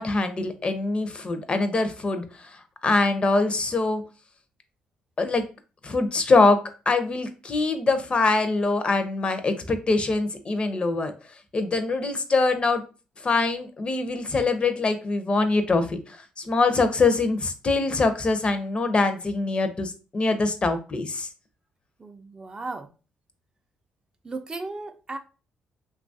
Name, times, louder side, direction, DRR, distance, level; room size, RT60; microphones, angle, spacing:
voice 1, 0.0-4.0 5.2-5.4 5.8-6.6 6.9-11.1 11.5-12.8 13.2-21.3, left 3 dB, 35° left, 0.5 m, -23 dB
voice 2, 22.0-22.9 24.2-25.2, right 3 dB, 25° right, 0.3 m, -35 dB
2.9 x 2.3 x 2.6 m
cardioid pair, 85°, 3 cm